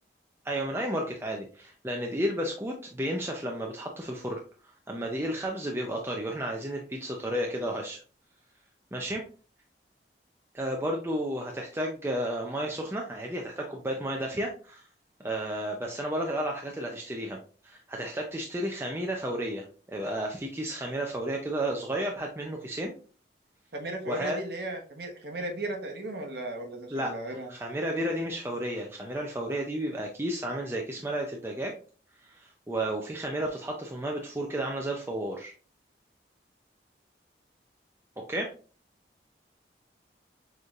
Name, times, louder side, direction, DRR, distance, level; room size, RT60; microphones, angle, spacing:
voice 1, 0.4-4.4 4.9-8.0 8.9-9.2 10.5-14.9 15.2-22.9 24.1-24.4 26.9-31.8 32.2-35.5 38.2-38.5, right 1 dB, 15° right, 0 dB, 0.5 m, -32 dB
voice 2, 23.7-27.5, right 2 dB, 70° right, 3 dB, 1.1 m, -36 dB
6.6 x 3.2 x 2.4 m, 0.39 s
head